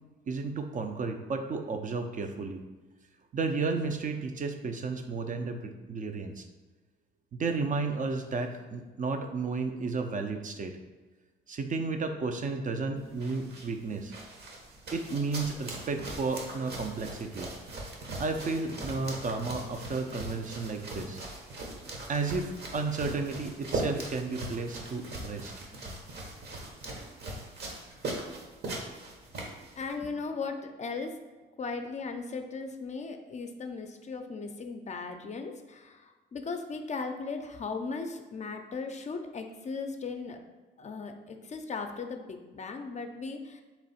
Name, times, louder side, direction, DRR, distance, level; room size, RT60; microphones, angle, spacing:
voice 1, 0.3-2.6 3.3-6.4 7.3-10.8 11.5-14.1 14.9-17.5 18.2-21.2 22.1-25.5, right 4 dB, 40° right, 6 dB, 0.5 m, -33 dB
sound 1, 13.0-29.9, right 2 dB, 55° right, 1.0 m, -40 dB
voice 2, 29.8-31.2 31.6-40.4 40.8-43.6, left 4 dB, 35° left, 5 dB, 0.5 m, -37 dB
3.5 x 3.1 x 4.1 m, 1.3 s
cardioid pair, 90°, 20 cm